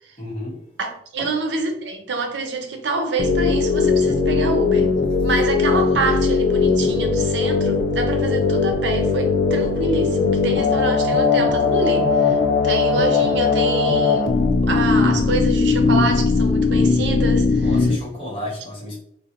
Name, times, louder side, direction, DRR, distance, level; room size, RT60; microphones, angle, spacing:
voice 1, 0.2-0.6 1.2-1.3 17.4-19.0, left 1 dB, 30° left, 0.9 m, -32 dB
voice 2, 0.8-4.9 5.2-12.4 12.6-17.8, right 3 dB, 80° right, 0.6 m, -26 dB
sound 1, 3.2-18.0, left 4 dB, 60° left, 0.3 m, -19 dB
3.8 x 2.1 x 2.8 m
head